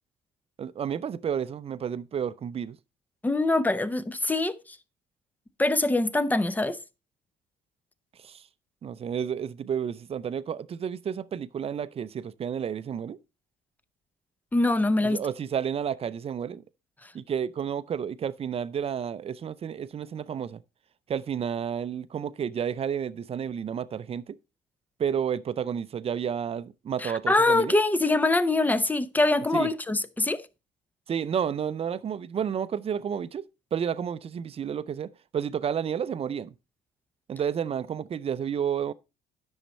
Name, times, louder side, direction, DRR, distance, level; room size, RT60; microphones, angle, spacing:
voice 1, 0.6-2.8 8.2-8.4 8.8-13.2 15.0-16.6 17.1-20.6 21.1-24.4 25.0-27.8 29.5-29.7 31.1-33.5 33.7-36.5 37.3-38.9, right 8 dB, 35° right, 0.5 m, -31 dB
voice 2, 3.2-4.8 5.6-6.8 14.5-15.2 17.0-17.1 27.0-30.4, left 2 dB, 10° left, 0.7 m, -24 dB
10.0 x 6.5 x 4.1 m
cardioid pair, 110°, 17 cm